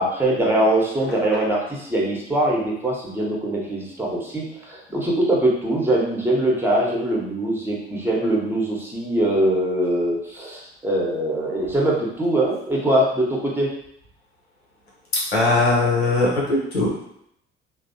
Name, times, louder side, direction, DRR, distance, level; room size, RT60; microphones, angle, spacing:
voice 1, 0.0-13.7, right 1 dB, 5° right, -3 dB, 0.9 m, -22 dB
voice 2, 15.1-17.1, left 2 dB, 90° left, -5 dB, 0.7 m, -20 dB
3.2 x 2.0 x 2.6 m, 0.76 s
figure-of-eight pair, 50°, 30 cm